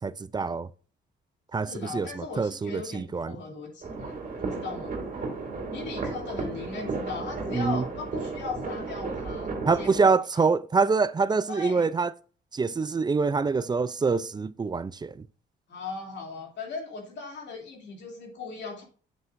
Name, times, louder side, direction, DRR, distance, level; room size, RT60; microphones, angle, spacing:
voice 1, 0.0-0.7 1.5-3.3 7.5-7.8 9.7-12.1 12.5-15.3, right 4 dB, 20° right, 0.4 m, -25 dB
voice 2, 1.6-4.1 4.4-5.0 5.7-10.5 11.5-11.9 15.7-18.8, left 4 dB, 65° left, 2.8 m, -38 dB
sound 1, 3.8-10.0, right 3 dB, 45° right, 2.4 m, -34 dB
8.3 x 7.6 x 2.6 m
cardioid pair, 90°, 20 cm